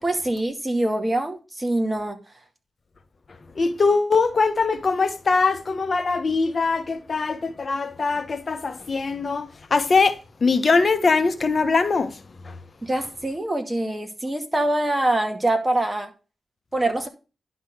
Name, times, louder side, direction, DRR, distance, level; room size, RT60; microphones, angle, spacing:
voice 1, 0.0-2.2 12.8-16.1 16.7-17.1, right 1 dB, 20° right, 2.2 m, -24 dB
voice 2, 3.6-10.1 10.4-12.1, left 4 dB, 50° left, 1.1 m, -22 dB
11.0 x 4.0 x 6.5 m
cardioid pair, 65°, 0 cm